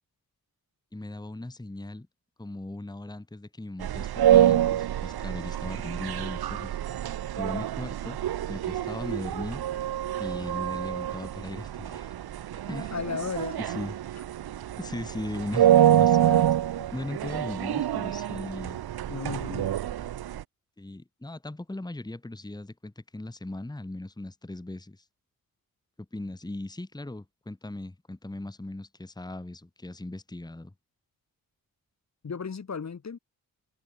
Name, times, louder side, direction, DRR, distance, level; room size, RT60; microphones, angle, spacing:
voice 1, 0.9-2.1 2.4-6.8 7.4-8.2 8.5-9.6 10.2-12.1 12.6-12.9 13.6-14.0 14.8-16.5 16.9-18.8 20.8-25.0 26.1-30.7, left 2 dB, 10° left, 1.4 m, -38 dB
sound 1, 3.8-20.4, right 11 dB, 80° right, 0.8 m, -26 dB
voice 2, 12.9-13.6 16.2-16.5 16.8-16.9 19.1-19.8 32.2-33.2, left 5 dB, 45° left, 1.7 m, -35 dB
cardioid pair, 70°, 37 cm